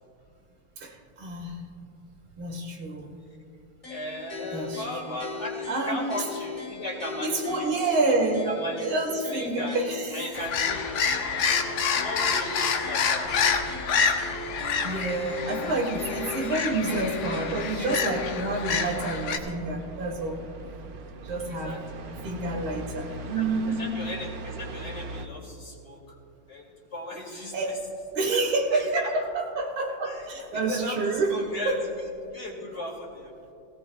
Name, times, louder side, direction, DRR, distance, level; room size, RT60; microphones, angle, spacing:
voice 1, 0.8-1.7 2.4-3.2 4.5-4.9 5.7-6.1 7.2-10.3 12.6-12.7 14.8-20.4 21.2-21.8 22.2-23.9 27.5-27.9 28.2-31.8, right 2 dB, 90° right, 0 dB, 2.4 m, -28 dB
sound 1, 3.8-18.3, left 4 dB, 20° left, 1.5 m, -39 dB
voice 2, 3.9-7.7 8.4-9.8 10.1-11.5 11.9-13.4 21.4-21.8 23.1-23.4 23.8-26.0 26.5-27.8 28.2-28.4 28.7-29.1 30.0-31.8 32.3-33.3, left 1 dB, 35° left, -2 dB, 2.7 m, -37 dB
sound 2, 10.3-19.4, left 6 dB, 75° left, 1.6 m, -28 dB
sound 3, 13.2-25.3, right 3 dB, 60° right, 1.1 m, -41 dB
21.0 x 17.0 x 2.3 m, 2.6 s
omnidirectional pair, 2.1 m